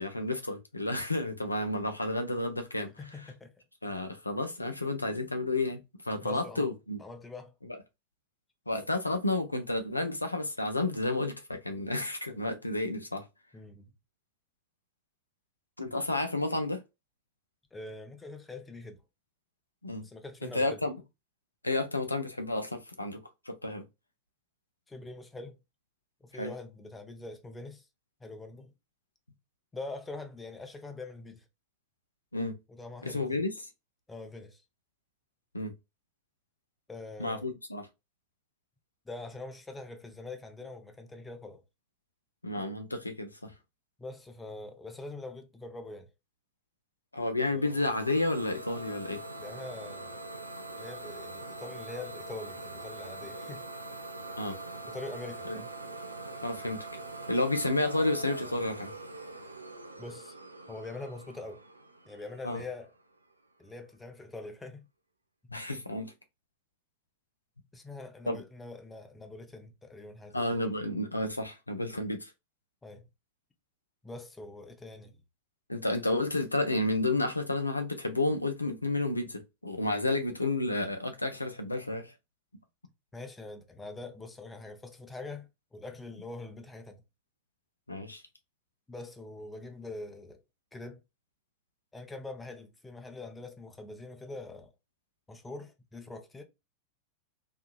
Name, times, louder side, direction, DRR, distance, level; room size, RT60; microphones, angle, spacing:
voice 1, 0.0-2.9 3.8-5.8 6.1-7.0 8.7-13.2 15.8-16.8 19.8-20.0 20.4-20.9 21.6-23.2 23.5-23.8 26.4-26.5 32.3-32.5 33.0-33.5 35.5-35.7 37.2-37.9 42.4-43.5 47.1-49.2 54.4-54.6 55.4-55.6 56.4-56.8 57.3-58.9 62.4-62.6 65.5-66.1 68.3-68.4 70.3-72.3 75.7-82.1 87.9-88.2, left 2 dB, 85° left, 0.5 m, -31 dB
voice 2, 3.0-3.5 6.2-6.7 7.0-7.5 13.5-13.9 17.7-19.0 20.0-20.8 24.9-25.6 26.2-27.9 28.2-28.7 29.7-31.4 32.7-33.4 34.1-34.6 36.9-37.5 39.1-41.6 44.0-46.1 47.4-47.8 49.4-50.2 50.8-53.6 54.8-55.7 60.0-60.4 60.7-61.6 62.1-62.9 63.6-64.9 67.7-70.5 72.8-73.1 74.0-75.2 83.1-87.0 88.9-90.4 90.7-91.0 91.9-94.7 95.3-96.4, left 3 dB, 10° left, 0.6 m, -44 dB
Idling / Domestic sounds home sounds, 47.6-63.2, right 2 dB, 80° right, 0.4 m, -43 dB
2.8 x 2.4 x 2.2 m
figure-of-eight pair, 90°, 0 cm